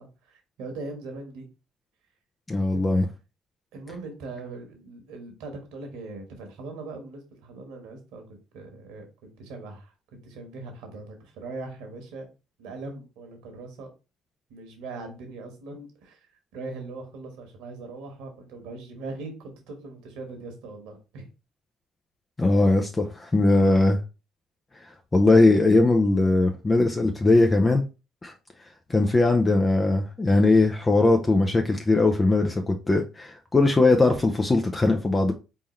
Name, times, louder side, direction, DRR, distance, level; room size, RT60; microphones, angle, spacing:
voice 1, 0.0-1.5 2.7-3.0 3.7-9.9 10.2-12.3 12.6-13.9 14.5-16.2 16.5-21.3, right 3 dB, 70° right, 1.4 m, -40 dB
voice 2, 2.5-3.1 22.4-24.0 25.1-27.8 28.2-28.3 28.9-35.3, left 2 dB, 25° left, 0.6 m, -20 dB
4.3 x 3.6 x 3.1 m
hypercardioid pair, 50°, 0 cm